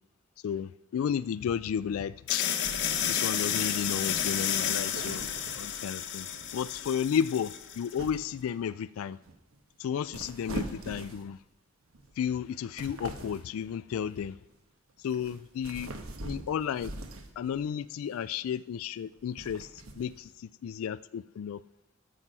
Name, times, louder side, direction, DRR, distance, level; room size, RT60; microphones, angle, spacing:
voice 1, 0.4-2.5 3.1-5.3 5.6-6.3 6.5-9.2 9.8-11.4 12.2-14.4 15.0-15.9 16.2-16.9 17.4-19.7 20.0-21.6, left 8 dB, 75° left, 15 dB, 0.3 m, -33 dB
sound 1, 2.3-8.0, left 9 dB, 55° left, 0.9 m, -31 dB
sound 2, 2.6-5.9 6.2-6.7 7.1-7.4 8.0-8.4 9.2-9.6 10.0-11.5 11.9-12.1 12.5-13.5 14.3-14.6 15.0-17.6 18.2-18.5 19.1-20.3, right 2 dB, 80° right, 1.2 m, -43 dB
13.5 x 6.1 x 5.5 m, 0.93 s
head